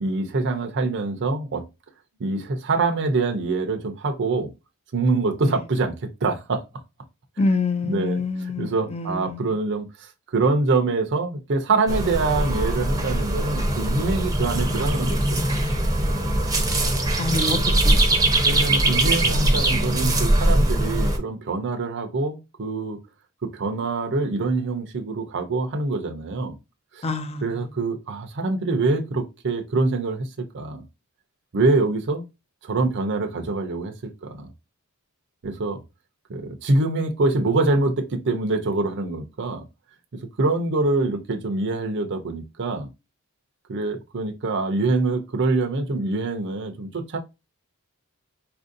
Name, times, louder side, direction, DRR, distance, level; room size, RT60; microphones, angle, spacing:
voice 1, 0.0-1.6 2.2-4.5 4.9-6.6 7.8-15.5 18.4-23.0 23.4-26.5 26.9-27.0 27.4-30.8 31.5-32.2 32.6-34.5 35.4-35.8 36.3-39.6 40.1-42.9 43.7-47.2, right 3 dB, 55° right, 0.6 m, -25 dB
voice 2, 7.4-9.5 17.2-18.0 27.0-27.7, left 3 dB, 25° left, 0.4 m, -27 dB
sound 1, 11.9-21.2, right 1 dB, 15° right, 0.6 m, -21 dB
4.2 x 2.6 x 2.6 m
head